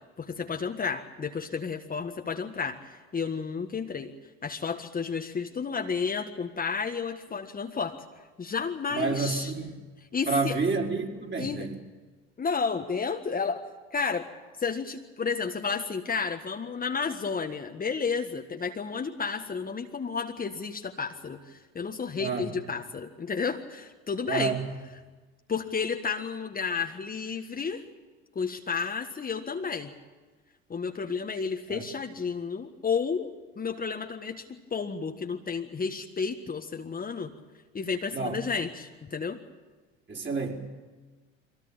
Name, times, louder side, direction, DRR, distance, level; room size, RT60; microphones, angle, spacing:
voice 1, 0.2-4.1 4.4-8.0 8.4-9.5 10.1-10.6 11.4-11.7 12.4-13.6 13.9-14.3 14.6-24.6 25.5-27.8 28.4-29.9 30.7-37.3 37.7-39.4, left 5 dB, 25° left, 4 dB, 1.6 m, -32 dB
voice 2, 8.9-9.8 10.3-11.8 22.2-22.5 24.3-24.6 31.7-31.8 38.1-38.4 40.1-40.5, right 4 dB, 35° right, 0 dB, 4.7 m, -29 dB
23.0 x 17.5 x 8.9 m, 1.3 s
hypercardioid pair, 75°, 33 cm